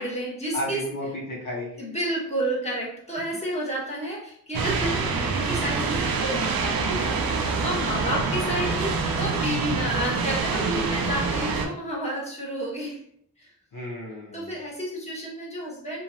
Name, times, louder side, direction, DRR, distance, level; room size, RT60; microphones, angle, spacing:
voice 1, 0.0-0.8 1.8-13.0 13.4-13.5 14.3-16.0, equal, 20° left, -5 dB, 1.4 m, -31 dB
voice 2, 0.5-1.8 6.8-7.1 8.0-8.2 13.7-14.5, left 1 dB, 60° left, -5 dB, 0.9 m, -33 dB
sound 1, 4.5-11.7, right 4 dB, 70° right, 0.5 m, -26 dB
3.0 x 2.3 x 2.6 m, 0.67 s
cardioid pair, 60°, 36 cm